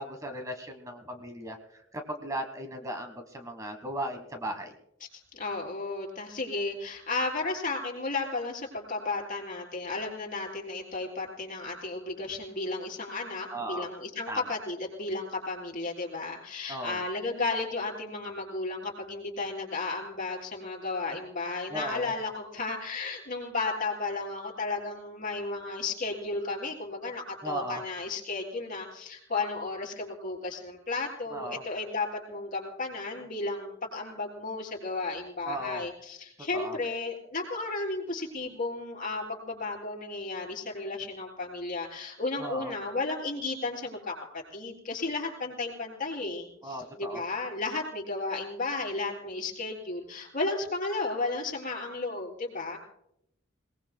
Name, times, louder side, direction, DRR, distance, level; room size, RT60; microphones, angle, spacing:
voice 1, 0.0-4.7 13.5-13.9 14.3-14.5 16.7-17.0 21.7-22.1 27.4-27.8 31.3-31.6 35.4-35.8 36.5-36.8 42.4-42.7 46.6-47.2, right 1 dB, 15° right, 5 dB, 1.3 m, -37 dB
voice 2, 5.1-52.8, left 3 dB, 45° left, 1 dB, 3.8 m, -34 dB
27.5 x 19.0 x 2.2 m, 0.78 s
head